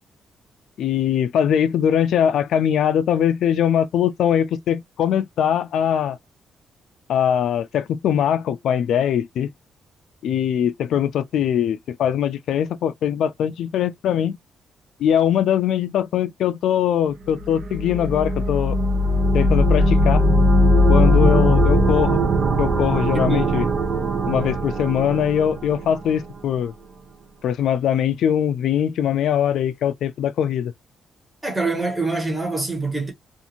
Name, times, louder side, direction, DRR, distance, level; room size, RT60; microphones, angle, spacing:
voice 1, 0.8-6.2 7.1-9.5 10.2-14.4 15.0-18.8 19.3-20.2 20.9-22.2 22.6-23.7 24.3-26.7 27.4-30.7, left 9 dB, 75° left, 0.3 m, -21 dB
sound 1, 17.4-26.2, equal, 50° right, 0.7 m, -19 dB
voice 2, 23.1-23.6 31.4-33.1, right 3 dB, 10° right, 1.3 m, -25 dB
2.6 x 2.5 x 2.8 m
cardioid pair, 140°, 0 cm